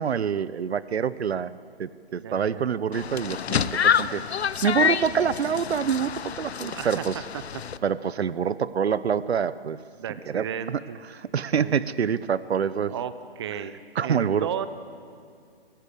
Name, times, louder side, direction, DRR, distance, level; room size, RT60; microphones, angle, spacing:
voice 1, 0.0-4.2 4.6-7.2 7.8-9.8 10.3-10.8 11.2-12.9 14.0-14.5, right 7 dB, 80° right, 17 dB, 0.8 m, -26 dB
voice 2, 2.2-2.7 6.7-7.1 7.3-7.4 10.0-11.0 11.5-11.8 12.9-13.7 14.0-14.7, right 9 dB, 25° right, 12 dB, 0.7 m, -34 dB
sound 1, 2.9-7.8, left 8 dB, 80° left, 0.8 m, -27 dB
25.5 x 15.0 x 8.4 m, 2.3 s
hypercardioid pair, 160°, 32 cm